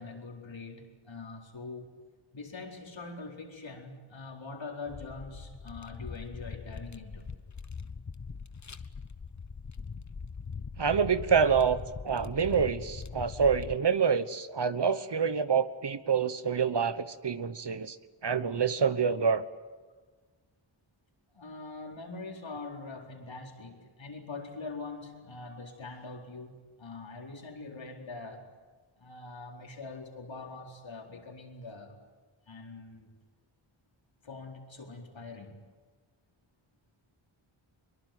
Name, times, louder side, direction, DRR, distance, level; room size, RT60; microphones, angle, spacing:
voice 1, 0.0-2.0 2.3-7.3 21.3-28.5 29.0-31.9 32.5-33.1 34.2-35.6, left 3 dB, 65° left, 2 dB, 4.4 m, -43 dB
sound 1, 4.9-13.8, left 5 dB, 35° left, 1.0 m, -42 dB
voice 2, 10.8-11.8 12.0-18.0 18.2-19.4, right 6 dB, 55° right, 13 dB, 1.2 m, -27 dB
23.0 x 23.0 x 9.4 m, 1.4 s
wide cardioid pair, 90°, 49 cm